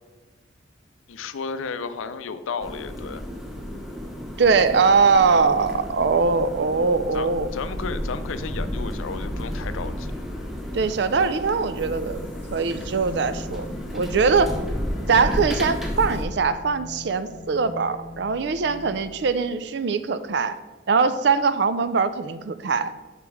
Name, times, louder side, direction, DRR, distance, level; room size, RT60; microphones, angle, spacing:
voice 1, 1.1-3.2 7.1-10.1, left 5 dB, 85° left, 12 dB, 0.5 m, -33 dB
sound 1, 2.6-16.2, equal, ahead, 0.8 m, -32 dB
voice 2, 4.4-7.5 10.7-13.7 13.9-14.5 15.1-20.6 20.9-22.9, right 5 dB, 55° right, 12 dB, 0.4 m, -22 dB
sound 2, 11.8-19.3, left 2 dB, 40° left, 0.8 m, -42 dB
5.8 x 5.2 x 4.7 m, 1.2 s
head